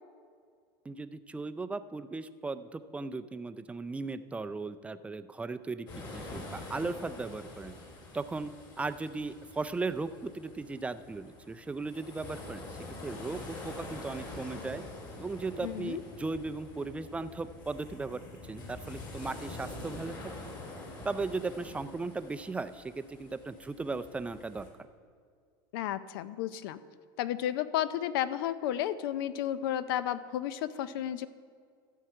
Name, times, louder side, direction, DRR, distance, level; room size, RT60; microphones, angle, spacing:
voice 1, 0.8-5.9 6.1-7.8 8.1-14.8 15.2-20.2 21.0-24.7, right 3 dB, 10° right, 11 dB, 0.4 m, -37 dB
sound 1, 5.9-24.7, left 2 dB, 35° left, 2.8 m, -46 dB
voice 2, 15.6-16.0 25.7-26.8 27.2-31.3, left 11 dB, 80° left, 15 dB, 0.5 m, -32 dB
13.5 x 4.7 x 7.6 m, 2.1 s
supercardioid pair, 115°, 12 cm